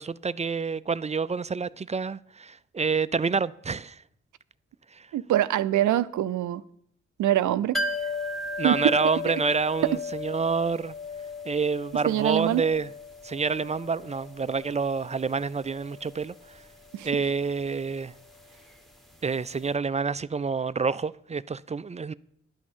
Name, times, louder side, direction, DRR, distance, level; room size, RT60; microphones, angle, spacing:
voice 1, 0.0-4.0 4.9-5.1 8.6-10.9 11.4-12.9 13.2-16.3 17.0-18.1 19.2-22.1, right 5 dB, 25° right, 0.4 m, -28 dB
voice 2, 5.1-6.6 7.2-7.8 8.6-8.8 9.3-9.4 9.8-10.0 12.1-12.6 16.9-17.1, right 13 dB, 75° right, 0.5 m, -24 dB
sound 1, 7.7-19.4 19.6-19.7, left 3 dB, ahead, 1.3 m, -37 dB
11.0 x 6.2 x 7.3 m
supercardioid pair, 50°, 30 cm